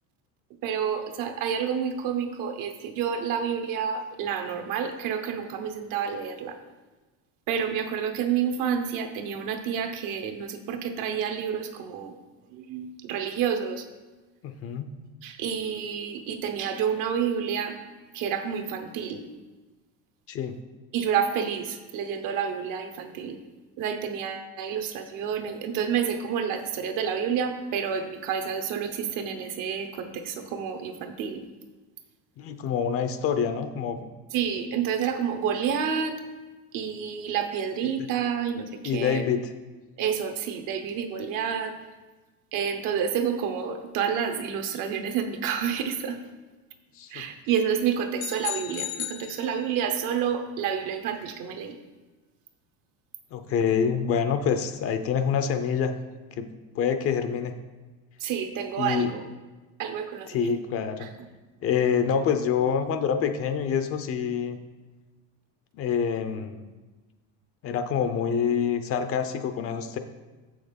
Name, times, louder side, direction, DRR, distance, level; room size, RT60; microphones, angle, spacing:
voice 1, 0.6-6.6 7.5-12.1 12.5-13.9 15.2-17.8 18.1-19.2 20.9-23.4 23.8-31.4 34.3-36.2 36.7-39.3 40.0-41.8 42.5-46.2 47.1-51.8 58.2-59.2 59.8-60.5 61.0-61.1, right 7 dB, 55° right, 7 dB, 1.0 m, -29 dB
voice 2, 14.4-14.9 20.3-20.6 32.4-34.1 38.8-39.4 47.0-47.3 53.3-55.9 56.4-56.5 56.7-57.5 58.8-59.1 60.3-61.1 61.6-64.6 65.7-66.7 67.6-70.0, left 7 dB, 40° left, 9 dB, 0.6 m, -26 dB
sound 1, 48.2-50.0, left 12 dB, 85° left, 1.1 m, -35 dB
7.3 x 6.4 x 5.2 m, 1.2 s
cardioid pair, 165°, 37 cm